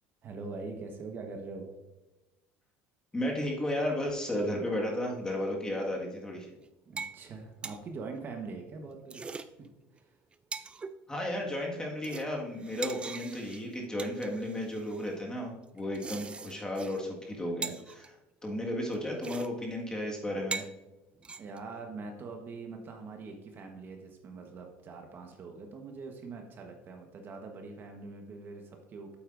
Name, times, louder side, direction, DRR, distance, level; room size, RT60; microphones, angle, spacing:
voice 1, 0.2-1.7 6.9-9.4 9.9-10.1 21.4-29.2, right 4 dB, 40° right, 3 dB, 1.2 m, -43 dB
voice 2, 3.1-6.5 11.1-18.1 18.4-20.7, left 1 dB, 15° left, -1 dB, 1.7 m, -34 dB
sound 1, 6.4-6.7 7.0-7.2 7.5-7.8 8.9-9.5 10.0-10.1 10.3-10.9 11.5-11.7 12.0-15.1 15.8-17.0 17.3-17.4 17.6-18.1 18.9-19.0 19.2-19.5 19.8-19.9 20.4-20.7 21.2-21.7, right 5 dB, 20° right, 0.4 m, -41 dB
8.6 x 7.9 x 2.6 m, 1.0 s
supercardioid pair, 110°, 5 cm